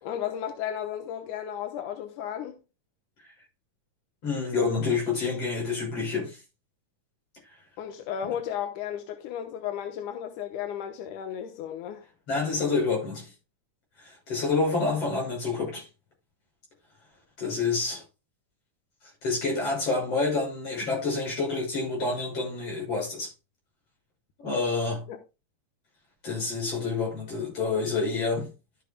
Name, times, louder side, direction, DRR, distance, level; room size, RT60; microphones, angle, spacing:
voice 1, 0.0-2.6 7.8-12.1 25.1-25.2, left 9 dB, 90° left, 2.5 m, -34 dB
voice 2, 4.2-6.4 12.3-13.3 14.0-15.9 17.4-18.0 19.2-23.3 24.4-25.0 26.2-28.5, left 4 dB, 50° left, 7.5 m, -28 dB
12.5 x 8.9 x 2.3 m
omnidirectional pair, 3.5 m